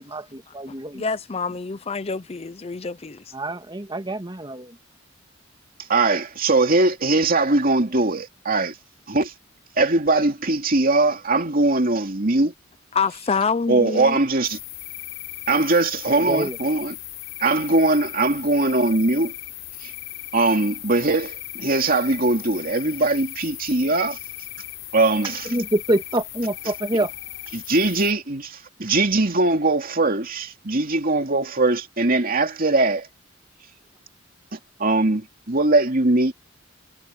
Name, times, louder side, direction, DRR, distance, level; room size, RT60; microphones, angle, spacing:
voice 1, 0.0-1.0 3.3-4.8 16.1-16.6 25.4-27.1, right 1 dB, 20° right, 2.0 m, -26 dB
voice 2, 0.9-3.2 12.9-14.2, left 5 dB, 30° left, 0.6 m, -26 dB
voice 3, 5.9-8.7 9.1-9.3 9.8-12.5 13.7-14.6 15.5-16.9 17.4-19.3 19.8-19.9 20.3-24.2 24.9-25.5 27.5-33.1 34.5-36.3, right 2 dB, 45° right, 2.7 m, -21 dB
sound 1, 14.4-28.1, left 16 dB, 80° left, 5.5 m, -37 dB
head